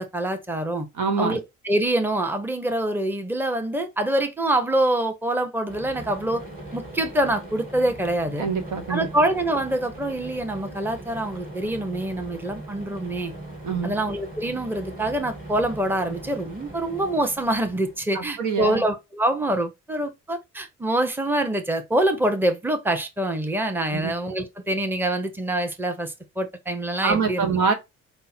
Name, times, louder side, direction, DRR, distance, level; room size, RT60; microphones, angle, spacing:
voice 1, 0.0-0.9 1.2-6.4 6.7-8.5 8.9-13.3 13.8-27.6, right 1 dB, 5° right, 0.8 m, -25 dB
voice 2, 1.0-1.4 8.4-9.3 13.6-14.0 18.1-18.8 23.9-24.3 27.0-27.7, right 5 dB, 80° right, 1.1 m, -25 dB
sound 1, 5.7-18.0, right 1 dB, 30° right, 2.2 m, -40 dB
5.3 x 2.1 x 4.2 m
cardioid pair, 90°, 30 cm